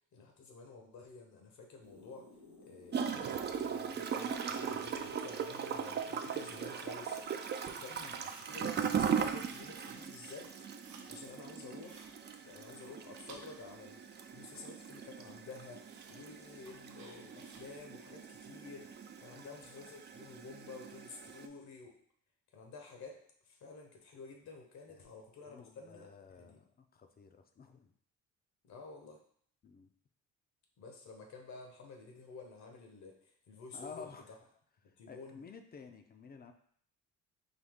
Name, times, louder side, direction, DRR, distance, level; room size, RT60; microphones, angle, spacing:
voice 1, 0.1-2.3 2.6-10.5 10.8-12.1 12.4-22.0 22.5-26.6 28.6-29.2 30.8-34.1 35.0-35.4, left 4 dB, 65° left, 2 dB, 1.0 m, -51 dB
sound 1, 1.8-7.4, left 2 dB, 85° left, 1.6 m, -57 dB
Gurgling / Toilet flush, 2.9-21.5, right 7 dB, 35° right, 0.4 m, -39 dB
sound 2, 8.2-8.5 8.9-9.1 9.4-10.0 10.3-11.1 11.4-12.1 12.6-14.0 14.2-14.9 15.2-15.3 15.8-16.2 16.6-17.7, right 4 dB, 70° right, 0.8 m, -58 dB
voice 2, 25.5-27.9 29.6-29.9 33.7-34.3 35.1-36.5, left 5 dB, 30° left, 7 dB, 0.5 m, -52 dB
4.0 x 2.8 x 3.5 m, 0.62 s
cardioid pair, 90°, 30 cm